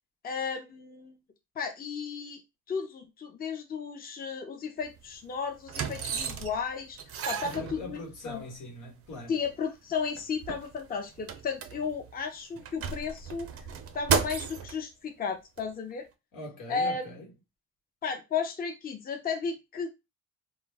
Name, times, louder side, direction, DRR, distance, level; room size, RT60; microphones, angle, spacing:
voice 1, 0.2-1.2 1.6-2.4 2.7-7.0 7.3-8.4 9.3-13.5 13.9-16.1 16.7-17.1 18.0-19.9, left 5 dB, 30° left, 0.5 m, -34 dB
sound 1, 4.8-5.0 5.7-6.7 7.0-8.3 9.1-9.2 9.4-9.5 10.0-12.1 12.6-14.7 15.6-15.7, right 7 dB, 50° right, 0.5 m, -33 dB
voice 2, 7.4-9.3 16.3-17.3, left 1 dB, 85° left, 1.2 m, -42 dB
2.2 x 2.0 x 3.3 m
cardioid pair, 90°, 30 cm